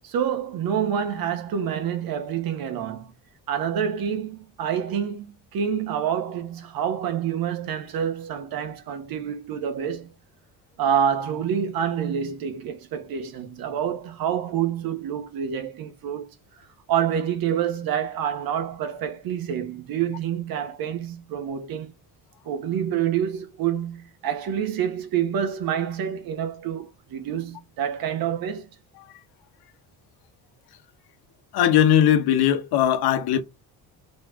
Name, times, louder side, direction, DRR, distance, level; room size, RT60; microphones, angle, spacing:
voice 1, 0.0-3.1 3.5-10.1 10.8-16.3 16.9-21.9 22.4-28.7, right 8 dB, 65° right, 1.5 m, -27 dB
voice 2, 31.5-33.4, left 10 dB, 80° left, 1.2 m, -19 dB
4.3 x 4.2 x 5.1 m
cardioid pair, 145°, 37 cm